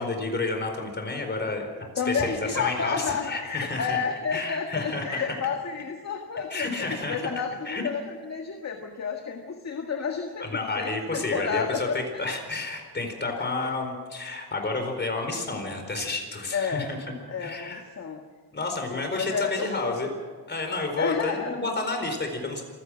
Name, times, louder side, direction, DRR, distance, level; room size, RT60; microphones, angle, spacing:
voice 1, 0.0-1.7 2.1-4.0 4.3-5.3 6.5-7.2 7.6-7.8 10.4-17.0 17.4-17.8 18.5-20.1 20.5-22.6, left 3 dB, 25° left, 4 dB, 4.3 m, -30 dB
voice 2, 2.0-12.2 13.3-13.7 16.5-16.9 17.3-18.2 18.9-19.9 21.0-21.5, left 6 dB, 45° left, 3 dB, 1.8 m, -31 dB
26.5 x 16.0 x 6.3 m, 1.5 s
wide cardioid pair, 130°, 39 cm